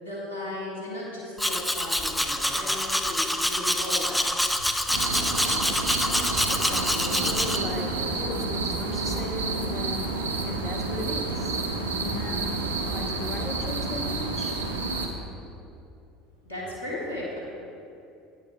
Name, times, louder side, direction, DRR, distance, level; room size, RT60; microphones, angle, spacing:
voice 1, 0.0-4.2 16.5-17.4, left 1 dB, 90° left, -6 dB, 1.8 m, -35 dB
Domestic sounds home sounds, 1.4-7.6, left 1 dB, 5° left, 0.5 m, -26 dB
sound 1, 4.9-15.1, right 3 dB, 80° right, 0.8 m, -29 dB
voice 2, 6.5-11.6 12.0-12.6 12.9-14.6, left 2 dB, 45° left, 2 dB, 1.4 m, -36 dB
9.5 x 7.7 x 3.2 m, 2.7 s
hypercardioid pair, 70°, 0 cm